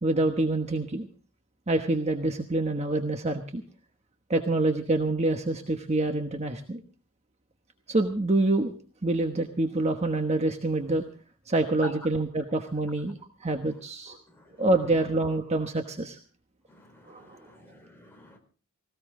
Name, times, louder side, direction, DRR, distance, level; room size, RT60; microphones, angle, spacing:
voice 1, 0.0-1.1 1.7-3.6 4.3-6.8 7.9-8.7 9.0-11.0 11.5-14.2 14.6-16.2 17.1-17.4, right 2 dB, 30° right, 1.1 m, -26 dB
voice 2, 16.7-18.4, left 2 dB, 10° left, 4.0 m, -45 dB
18.5 x 17.0 x 3.7 m
head